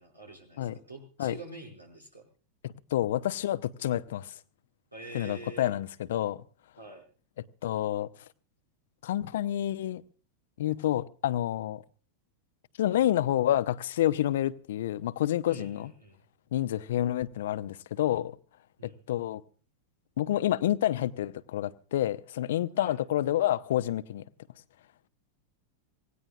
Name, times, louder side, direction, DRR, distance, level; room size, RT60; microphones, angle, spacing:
voice 1, 0.0-2.3 4.9-5.7 6.8-7.0 15.4-16.2 18.8-19.0 22.8-23.0, right 2 dB, 85° right, 6.0 m, -46 dB
voice 2, 2.6-4.3 5.1-6.4 7.6-8.1 9.0-10.0 10.6-11.8 12.8-15.9 16.5-18.4 18.8-19.4 20.2-24.2, left 12 dB, 60° left, 0.8 m, -28 dB
26.0 x 18.0 x 2.4 m
figure-of-eight pair, 90°, 0 cm